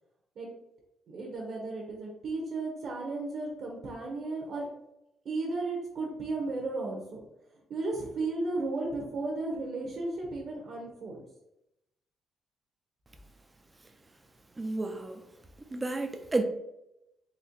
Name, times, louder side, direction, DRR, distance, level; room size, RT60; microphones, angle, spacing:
voice 1, 1.1-4.7 5.2-7.2 7.7-11.2, right 3 dB, 50° right, 0.9 m, -34 dB
voice 2, 14.6-15.2 15.7-16.4, right 2 dB, 15° right, 0.4 m, -31 dB
4.2 x 3.0 x 2.9 m
cardioid pair, 155°, 0 cm